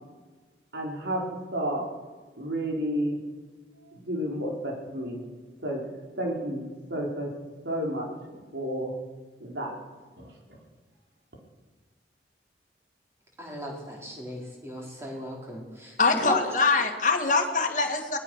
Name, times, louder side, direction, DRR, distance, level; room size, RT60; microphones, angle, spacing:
voice 1, 0.7-1.2 1.5-1.8 2.4-3.2 3.9-5.2 5.6-5.8 6.1-7.3 7.6-8.1 8.5-8.9 9.4-9.7 10.2-10.3, equal, 75° right, -1 dB, 5.1 m, -31 dB
voice 2, 13.4-15.9 16.3-16.4, right 1 dB, 15° right, -2 dB, 4.9 m, -37 dB
voice 3, 16.0-18.2, left 4 dB, 45° left, 4 dB, 2.3 m, -23 dB
22.5 x 19.5 x 6.6 m, 1.3 s
head